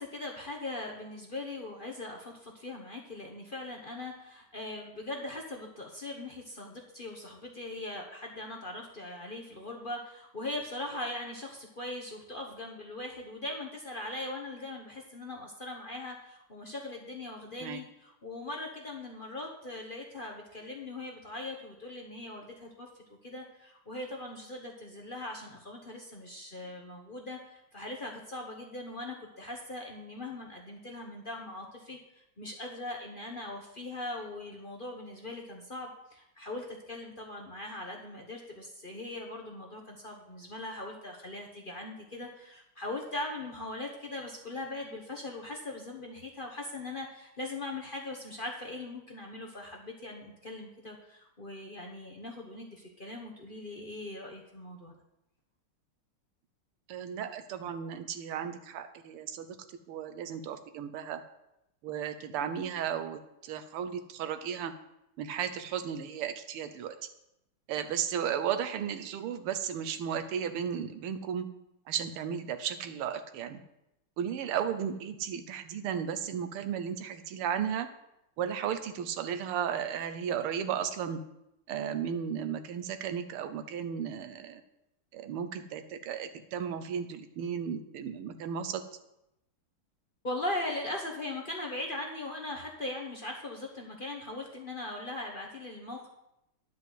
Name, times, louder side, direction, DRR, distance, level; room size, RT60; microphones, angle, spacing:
voice 1, 0.0-22.9 23.2-54.9 90.2-96.1, left 2 dB, 35° left, 0 dB, 0.9 m, -40 dB
voice 2, 56.9-59.5 59.9-61.2 61.8-64.7 65.2-67.0 67.7-71.5 71.9-73.6 74.2-77.9 78.4-81.2 81.7-84.6 85.1-88.8, right 8 dB, 85° right, 9 dB, 1.7 m, -34 dB
10.0 x 5.5 x 7.9 m, 0.86 s
omnidirectional pair, 2.4 m